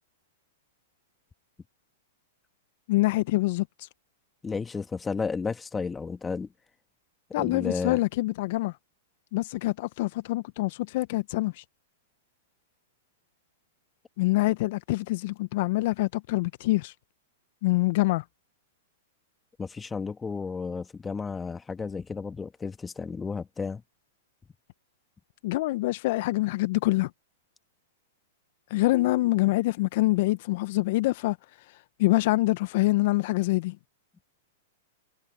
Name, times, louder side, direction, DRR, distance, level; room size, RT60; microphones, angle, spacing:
voice 1, 2.9-3.9 7.3-8.8 9.3-11.6 14.2-16.9 17.6-18.2 25.4-27.1 28.7-31.4 31.7-33.8, left 19 dB, 55° left, 0.9 m, -25 dB
voice 2, 4.4-6.5 7.4-8.0 19.6-23.8, left 5 dB, 15° left, 1.8 m, -32 dB
hypercardioid pair, 110°, 0 cm